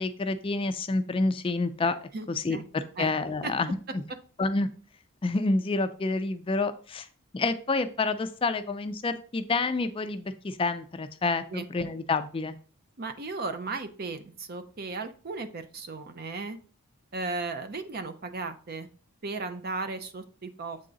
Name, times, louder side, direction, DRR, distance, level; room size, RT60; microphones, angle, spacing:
voice 1, 0.0-2.0 2.3-4.0 4.4-4.7 5.2-7.1 7.3-12.5, left 3 dB, 25° left, 10 dB, 0.4 m, -28 dB
voice 2, 2.1-2.6 3.0-3.1 3.4-3.5 11.5-11.7 13.0-16.6 17.1-18.9 19.2-20.8, right 3 dB, 45° right, 10 dB, 0.6 m, -35 dB
7.6 x 3.7 x 3.9 m, 0.41 s
head